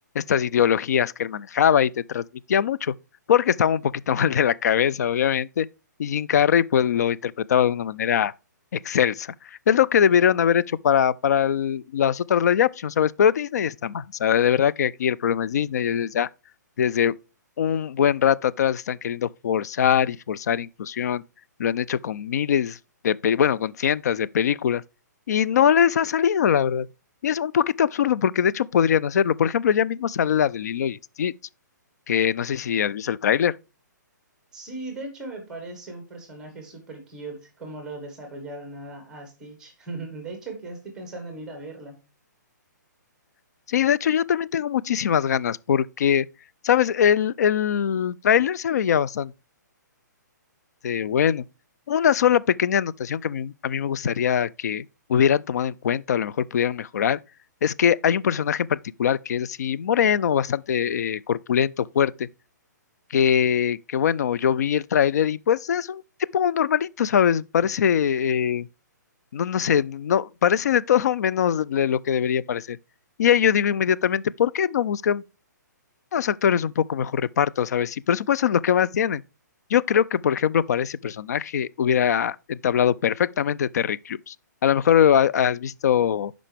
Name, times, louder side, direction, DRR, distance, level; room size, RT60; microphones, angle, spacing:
voice 1, 0.1-2.9 3.3-5.7 6.0-8.3 8.8-9.3 9.7-16.3 16.8-17.1 17.6-21.2 21.6-22.8 23.0-24.8 25.3-26.9 27.2-31.3 32.1-33.5 43.7-46.3 46.6-49.3 50.8-51.4 51.9-54.8 55.1-57.2 57.6-62.3 63.1-66.0 66.3-68.7 69.3-72.8 73.2-75.2 76.1-79.2 79.7-84.3 84.6-86.3, left 8 dB, 60° left, 0.4 m, -22 dB
voice 2, 34.5-42.0, right 2 dB, 5° right, 1.4 m, -38 dB
11.0 x 5.1 x 3.4 m
hypercardioid pair, 170°, 10 cm